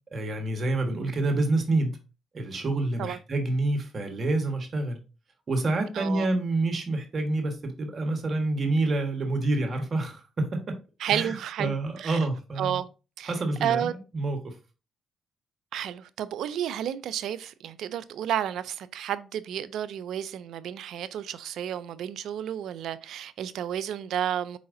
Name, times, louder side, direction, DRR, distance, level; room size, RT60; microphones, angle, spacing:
voice 1, 0.1-2.0 2.3-5.0 5.5-10.7 11.0-12.8 13.2-14.5, right 2 dB, 50° right, 1.4 m, -28 dB
voice 2, 5.9-6.3 11.0-12.2 12.6-12.9 13.2-13.3 13.6-13.9 15.7-24.6, right 10 dB, 75° right, 0.4 m, -31 dB
4.7 x 4.1 x 2.6 m
supercardioid pair, 55°, 0 cm